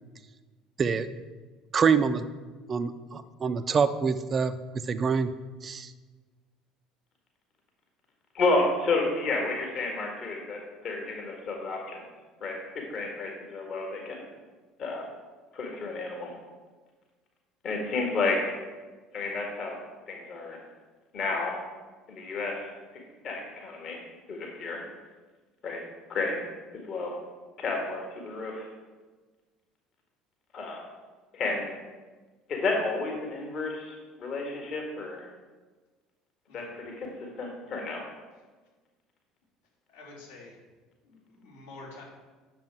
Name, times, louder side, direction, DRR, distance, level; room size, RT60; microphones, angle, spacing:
voice 1, 1.7-2.2 2.7-4.5 4.9-5.3 5.6-5.9, right 6 dB, 35° right, 11 dB, 0.6 m, -25 dB
voice 2, 8.3-12.0 12.4-14.3 14.8-15.0 15.5-16.3 17.6-18.5 19.1-19.8 20.1-20.6 21.1-21.6 22.1-22.5 23.2-24.0 24.3-24.8 25.6-25.8 26.1-26.4 26.9-27.1 27.6-28.7 30.5-30.8 31.3-31.8 32.5-35.2 36.5-37.1 37.4-38.0, left 3 dB, 45° left, 1 dB, 1.7 m, -31 dB
voice 3, 39.9-40.5 41.0-42.0, left 3 dB, 75° left, -8 dB, 3.4 m, -47 dB
9.5 x 6.9 x 4.7 m, 1.4 s
figure-of-eight pair, 60°, 0 cm